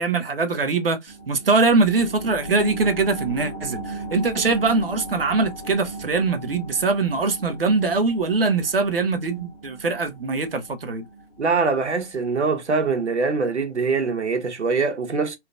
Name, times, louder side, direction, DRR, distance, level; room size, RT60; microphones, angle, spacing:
voice 1, 0.0-11.1, right 3 dB, 55° right, 0.9 m, -22 dB
sound 1, 1.1-12.2 12.6-12.7, right 2 dB, 25° left, 1.5 m, -36 dB
voice 2, 11.4-15.4, right 4 dB, 70° right, 1.2 m, -23 dB
3.2 x 2.9 x 2.4 m
hypercardioid pair, 165°, 35 cm